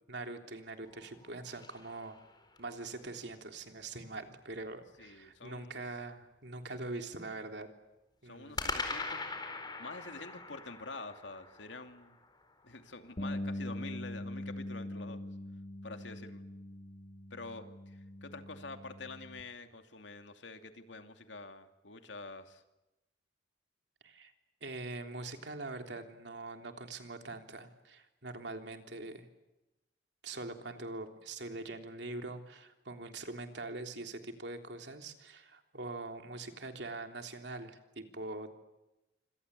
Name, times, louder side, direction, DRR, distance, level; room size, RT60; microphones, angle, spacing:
voice 1, 0.1-2.2 2.6-7.7 8.2-8.6 24.0-24.3 24.6-29.3 30.2-38.5, right 2 dB, 70° right, 5 dB, 3.5 m, -43 dB
sound 1, 0.9-2.8 8.6-12.8, left 3 dB, 25° left, 4.4 m, -42 dB
voice 2, 5.0-5.8 8.2-9.2 9.8-12.1 12.6-15.3 15.8-16.4 17.3-22.6, left 3 dB, 90° left, 7 dB, 2.7 m, -47 dB
Bass guitar, 13.2-19.4, left 1 dB, 40° left, 2.0 m, -42 dB
27.0 x 26.0 x 8.4 m, 0.98 s
head